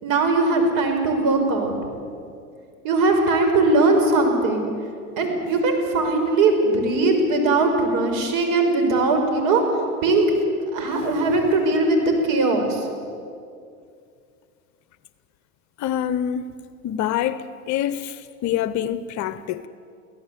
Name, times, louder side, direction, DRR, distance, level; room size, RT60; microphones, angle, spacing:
voice 1, 0.0-1.8 2.8-4.7 5.2-10.3 10.7-12.9, right 2 dB, 50° right, 5.6 m, -20 dB
voice 2, 15.8-16.5 16.8-18.2 18.4-19.7, left 10 dB, 40° left, 1.0 m, -25 dB
24.5 x 16.5 x 8.5 m
hypercardioid pair, 95°, 43 cm